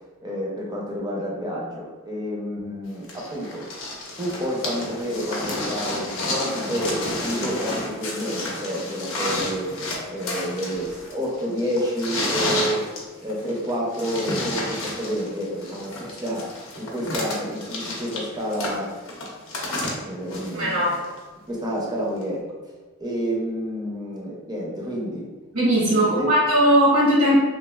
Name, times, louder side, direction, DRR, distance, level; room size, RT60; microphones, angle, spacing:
voice 1, 0.2-3.7 4.2-9.7 10.1-12.9 13.2-18.9 20.0-20.9 21.5-22.5 23.0-25.3 25.9-26.3, equal, 20° right, -3 dB, 0.5 m, -29 dB
sound 1, 3.1-21.2 22.2-22.3, left 1 dB, 60° left, 0.6 m, -30 dB
voice 2, 20.5-20.9 25.5-27.4, equal, 80° right, -5 dB, 1.0 m, -18 dB
3.1 x 2.3 x 2.3 m, 1.3 s
head